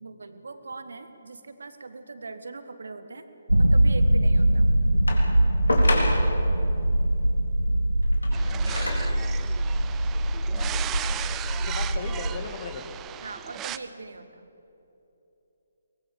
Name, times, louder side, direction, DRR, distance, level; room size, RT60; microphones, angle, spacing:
voice 1, 0.0-3.3 3.6-4.7 13.2-14.5, right 3 dB, 60° right, 10 dB, 1.8 m, -40 dB
sound 1, 3.5-12.5, right 1 dB, 85° right, 0.9 m, -23 dB
sound 2, 5.1-6.5 8.0-9.2 10.1-10.2, left 2 dB, 70° left, 4.0 m, -30 dB
sound 3, 8.3-13.8, right 11 dB, 15° right, 0.6 m, -37 dB
voice 2, 10.1-11.2 11.5-13.0, left 5 dB, 35° left, 6 dB, 2.4 m, -39 dB
23.0 x 20.5 x 7.1 m, 3.0 s
figure-of-eight pair, 140°, 0 cm